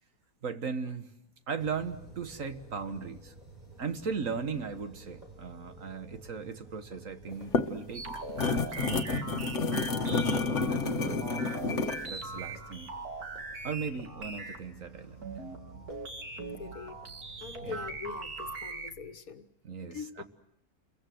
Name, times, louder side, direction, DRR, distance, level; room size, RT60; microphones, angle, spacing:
voice 1, 0.4-1.1 1.5-3.3 3.8-9.4 10.1-10.4 10.7-11.4 12.1-12.9 13.6-15.3 17.6-17.8 19.6-20.2, right 5 dB, 60° right, 1.8 m, -38 dB
sound 1, 1.6-18.6, right 2 dB, 30° right, 5.8 m, -53 dB
sound 2, 7.3-12.1, left 4 dB, 55° left, 1.6 m, -29 dB
sound 3, 7.9-19.1, right 3 dB, 80° right, 2.7 m, -41 dB
voice 2, 16.4-17.0 17.4-19.5 19.8-20.2, left 6 dB, 70° left, 1.7 m, -43 dB
29.5 x 23.0 x 7.8 m
omnidirectional pair, 1.6 m